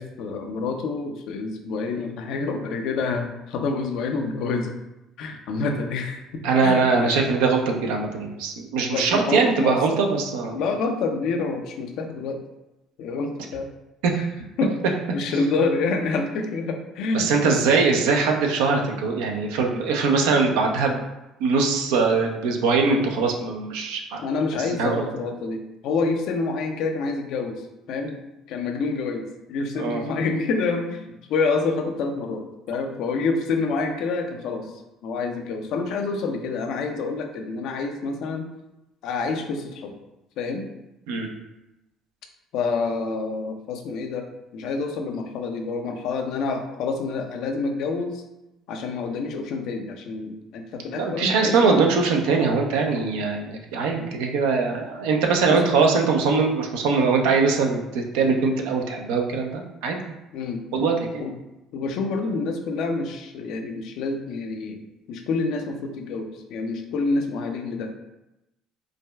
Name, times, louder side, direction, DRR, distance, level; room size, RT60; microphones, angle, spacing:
voice 1, 0.0-4.7 5.2-6.2 6.6-7.1 8.9-10.0 10.5-12.4 13.0-13.7 14.2-14.3 14.6-17.6 24.2-27.6 27.9-28.2 28.5-31.0 31.3-34.7 35.0-38.5 39.0-39.9 40.4-40.7 42.5-44.2 44.5-48.2 48.7-51.8 55.5-55.7 60.3-60.6 61.2-61.3 61.7-64.8 65.1-67.9, left 4 dB, 70° left, 4 dB, 0.4 m, -27 dB
voice 2, 6.4-10.6 14.0-14.1 17.1-21.0 21.4-24.2 24.8-25.0 29.8-30.0 41.1-41.3 50.9-60.0 60.7-61.2, right 4 dB, 80° right, 2 dB, 0.5 m, -22 dB
4.7 x 2.2 x 2.2 m, 0.94 s
hypercardioid pair, 65°, 0 cm